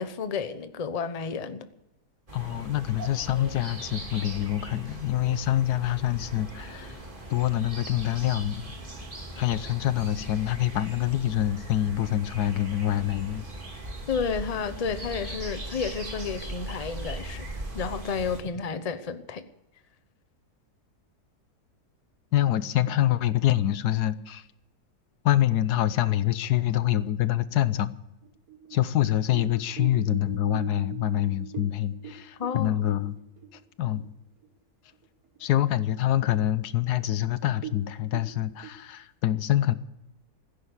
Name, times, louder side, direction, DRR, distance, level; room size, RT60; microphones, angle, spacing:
voice 1, 0.0-1.7 14.1-17.5 17.7-19.4 32.4-32.8, left 5 dB, 30° left, 0.8 m, -31 dB
voice 2, 2.3-7.0 7.3-8.7 9.4-13.5 22.3-24.5 25.2-27.9 28.7-33.1 33.8-34.1 35.4-39.7, left 12 dB, 80° left, 1.3 m, -26 dB
sound 1, 2.3-18.4, right 1 dB, 30° right, 2.7 m, -39 dB
sound 2, 28.2-34.1 34.4-34.5 34.9-35.5 35.9-36.0 36.6-36.7 37.0-37.1 37.5-38.7, right 8 dB, 65° right, 2.2 m, -42 dB
16.0 x 9.8 x 8.2 m
omnidirectional pair, 1.7 m